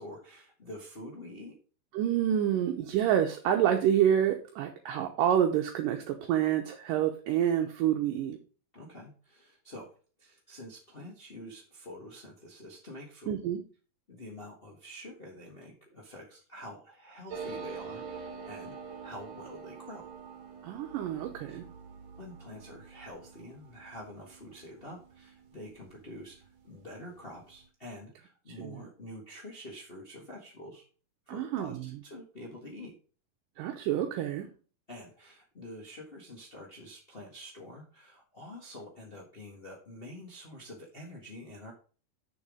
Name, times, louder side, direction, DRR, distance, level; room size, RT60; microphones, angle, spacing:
voice 1, 0.0-1.6 8.7-13.3 14.1-18.8 19.0-20.1 21.5-21.6 22.2-30.9 31.3-33.0 34.9-41.7, left 1 dB, 65° left, -1 dB, 0.5 m, -47 dB
voice 2, 1.9-8.4 13.3-13.6 20.6-21.7 28.6-28.7 31.3-31.8 33.6-34.5, right 10 dB, 75° right, 3 dB, 2.4 m, -28 dB
sound 1, 17.3-26.4 26.7-26.8 27.0-27.6, right 5 dB, 55° right, 2.6 m, -45 dB
7.0 x 6.3 x 4.9 m, 0.38 s
omnidirectional pair, 4.0 m